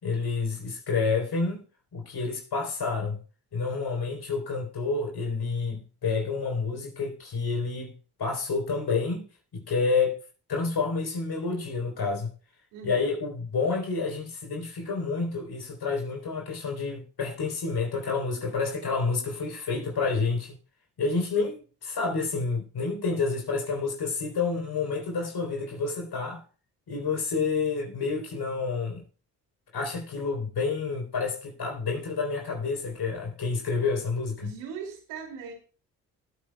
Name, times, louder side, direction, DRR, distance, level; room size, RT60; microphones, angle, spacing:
voice 1, 0.0-1.6 1.9-3.2 3.5-7.9 8.2-9.2 9.5-10.2 10.5-12.3 12.8-20.6 21.0-26.4 26.9-29.0 29.7-34.5, left 4 dB, 60° left, 3.6 m, -29 dB
voice 2, 12.7-13.1 34.4-35.5, right 6 dB, 85° right, 2.6 m, -39 dB
19.0 x 8.7 x 2.3 m
hypercardioid pair, 45°, 43 cm